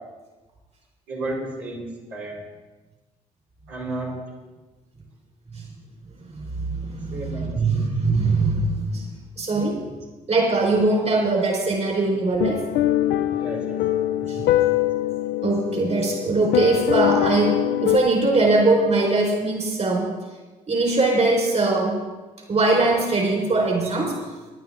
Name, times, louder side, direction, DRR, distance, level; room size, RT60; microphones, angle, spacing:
voice 1, 1.1-2.4 3.7-4.1 6.8-7.8 13.3-13.8, right 2 dB, 80° right, -7 dB, 4.8 m, -33 dB
voice 2, 6.3-9.0 9.4-9.8 10.3-12.6 14.3-14.4 15.4-20.1 20.7-21.9 22.5-24.1, right 2 dB, 40° right, -1 dB, 4.3 m, -21 dB
sound 1, 12.4-18.0, left 13 dB, 75° left, 0.6 m, -23 dB
19.0 x 10.5 x 3.7 m, 1.2 s
supercardioid pair, 60°, 17 cm